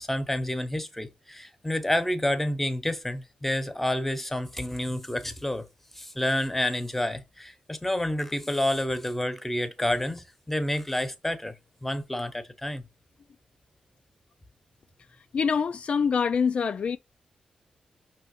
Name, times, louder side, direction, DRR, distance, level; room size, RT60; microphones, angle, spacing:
voice 1, 0.0-5.7 5.9-11.5 11.8-12.8, left 1 dB, 10° left, 1.0 m, -29 dB
voice 2, 15.3-17.0, left 6 dB, 55° left, 0.3 m, -25 dB
5.6 x 3.0 x 3.0 m
cardioid pair, 75°, 2 cm